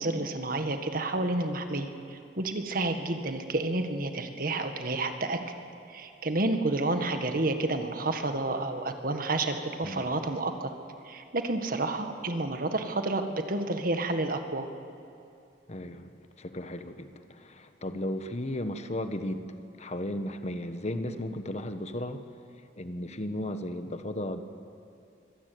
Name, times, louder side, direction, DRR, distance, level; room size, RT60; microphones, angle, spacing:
voice 1, 0.0-5.4 5.9-10.7 11.0-14.7, right 2 dB, 55° right, 7 dB, 1.8 m, -30 dB
voice 2, 15.7-22.2 22.8-24.4, left 1 dB, 40° left, 9 dB, 1.2 m, -35 dB
24.0 x 17.5 x 9.4 m, 2.6 s
head